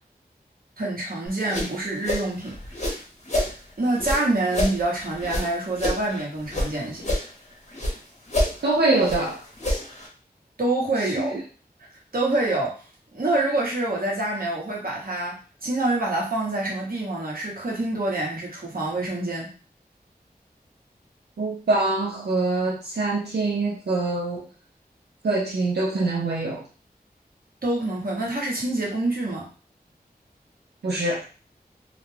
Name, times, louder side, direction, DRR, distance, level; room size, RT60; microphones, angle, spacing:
voice 1, 0.8-2.6 3.8-7.0 10.6-11.4 12.1-12.8 13.1-19.5 27.6-29.5, right 2 dB, 60° right, -3 dB, 1.0 m, -26 dB
sound 1, 1.3-3.5 3.9-6.7 7.0-8.0 8.3-10.1, left 1 dB, 45° left, 0.9 m, -28 dB
voice 2, 8.6-9.4 21.4-24.4 25.2-26.6 30.8-31.2, right 2 dB, 85° right, -3 dB, 0.5 m, -24 dB
2.4 x 2.1 x 3.2 m, 0.38 s
wide cardioid pair, 50°, 17 cm